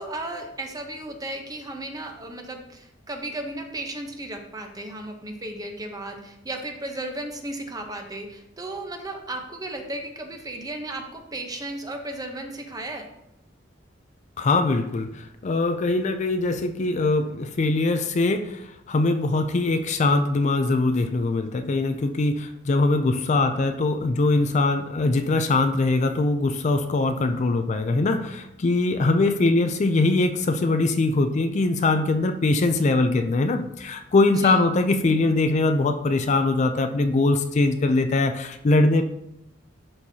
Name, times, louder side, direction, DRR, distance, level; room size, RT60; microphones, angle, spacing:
voice 1, 0.0-13.1 34.4-34.6, right 1 dB, 20° right, 3 dB, 0.9 m, -35 dB
voice 2, 14.4-39.0, left 2 dB, 40° left, 7 dB, 0.4 m, -22 dB
11.0 x 4.5 x 2.8 m, 0.82 s
head